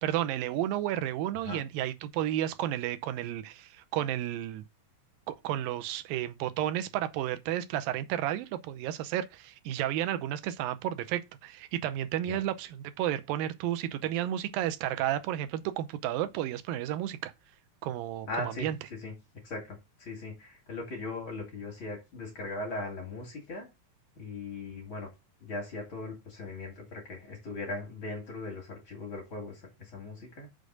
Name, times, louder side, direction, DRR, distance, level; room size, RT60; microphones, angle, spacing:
voice 1, 0.0-4.6 5.3-17.3 17.8-18.8, right 12 dB, 90° right, 2.5 m, -32 dB
voice 2, 18.2-18.7 19.0-19.1 19.4-23.7 24.2-25.1 25.4-30.5, left 2 dB, 35° left, 3.4 m, -39 dB
6.6 x 5.1 x 6.5 m
omnidirectional pair, 4.0 m